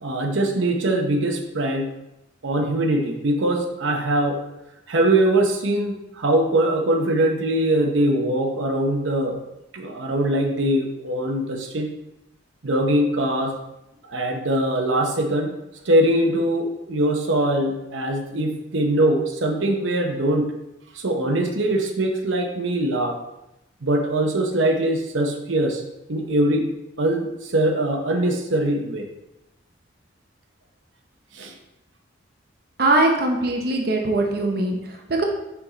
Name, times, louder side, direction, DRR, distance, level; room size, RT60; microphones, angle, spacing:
voice 1, 0.0-1.9 2.4-4.4 4.9-9.4 9.7-11.9 12.6-13.5 14.1-15.5 15.9-20.5 21.0-23.2 23.8-25.8 26.1-26.7 27.0-29.1 31.4-31.5, right 1 dB, 85° right, 2 dB, 0.8 m, -22 dB
voice 2, 32.8-34.8 35.1-35.2, right 2 dB, 50° right, 1 dB, 0.7 m, -21 dB
5.9 x 4.6 x 3.9 m, 0.91 s
head